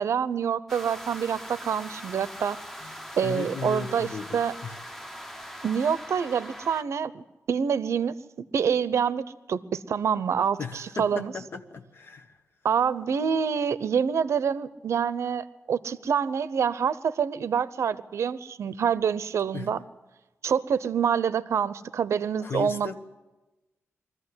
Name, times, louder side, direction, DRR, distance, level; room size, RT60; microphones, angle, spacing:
voice 1, 0.0-2.6 3.2-4.1 4.3-4.5 5.6-8.1 8.5-11.3 12.6-19.8 20.4-22.9, right 7 dB, 65° right, 16 dB, 0.8 m, -26 dB
sound 1, 0.7-6.8, equal, 5° left, 0.9 m, -41 dB
voice 2, 2.8-4.8 10.6-12.4 19.5-19.7 22.4-22.9, left 5 dB, 50° left, 5 dB, 1.2 m, -36 dB
22.5 x 14.5 x 9.7 m, 1.1 s
wide cardioid pair, 160°, 5 cm